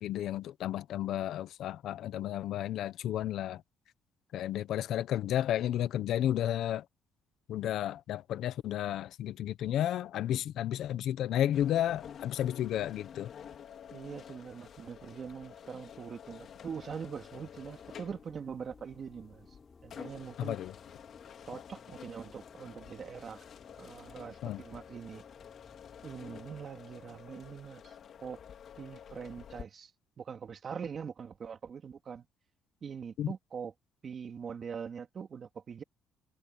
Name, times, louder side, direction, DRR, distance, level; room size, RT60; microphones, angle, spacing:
voice 1, 0.0-3.6 4.3-6.8 7.5-13.3 20.4-20.7 24.4-24.6 33.2-33.3, left 11 dB, 65° left, 0.9 m, -32 dB
sound 1, 11.5-29.7, left 8 dB, 50° left, 3.9 m, -50 dB
voice 2, 13.9-19.5 19.8-20.6 21.5-23.5 23.8-25.2 26.0-27.9 28.2-28.4 28.8-29.9 30.2-32.3 32.8-33.7 34.0-35.8, right 6 dB, 40° right, 2.9 m, -43 dB
sound 2, 16.6-26.7, left 4 dB, 25° left, 4.7 m, -58 dB
cardioid pair, 140°, 0 cm